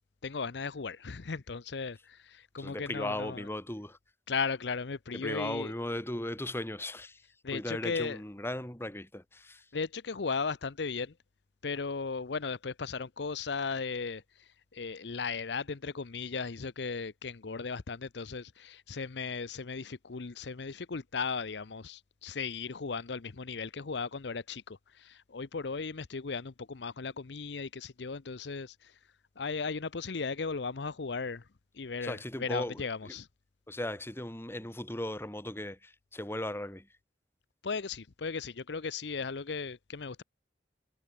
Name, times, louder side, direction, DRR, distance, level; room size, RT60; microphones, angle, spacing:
voice 1, 0.2-3.5 4.3-5.7 7.4-8.2 9.7-11.1 11.6-28.9 29.4-31.4 31.7-33.3 37.6-40.2, left 5 dB, 70° left, 0.7 m, -36 dB
voice 2, 2.6-4.0 5.1-7.2 7.5-9.7 32.0-33.2 33.7-36.9, left 1 dB, 15° left, 1.8 m, -37 dB
head